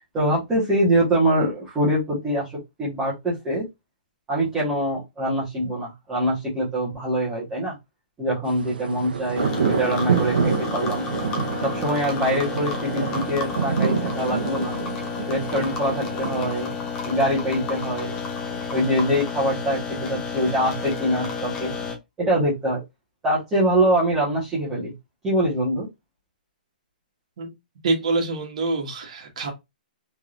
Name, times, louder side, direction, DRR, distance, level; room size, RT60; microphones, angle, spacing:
voice 1, 0.1-3.6 4.3-7.7 8.2-11.0 11.6-14.7 15.3-16.7 17.0-18.2 18.5-21.7 22.2-22.8 23.2-24.9 25.2-25.9, right 1 dB, 10° right, 1.1 m, -24 dB
sound 1, 8.6-16.6, right 5 dB, 90° right, 0.8 m, -27 dB
sound 2, 9.4-22.0, left 5 dB, 15° left, 0.5 m, -31 dB
voice 2, 27.8-29.5, right 3 dB, 45° right, 1.3 m, -25 dB
3.5 x 3.2 x 2.4 m
hypercardioid pair, 175°, 5 cm